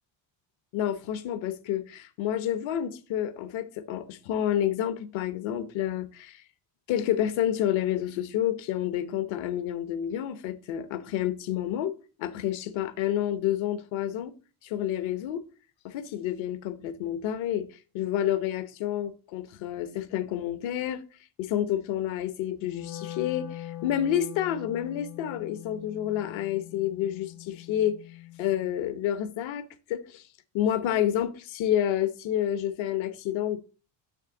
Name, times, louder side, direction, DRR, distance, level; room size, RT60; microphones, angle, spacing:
voice 1, 0.7-6.4 6.9-11.9 12.2-14.3 14.6-15.4 15.8-17.7 17.9-21.0 21.4-28.0 28.4-30.2 30.5-33.6, left 11 dB, 70° left, 1.0 m, -29 dB
Wind instrument woodwind instrument, 22.6-28.8, left 14 dB, 50° left, 0.7 m, -42 dB
6.9 x 6.5 x 3.8 m
cardioid pair, 130°, 48 cm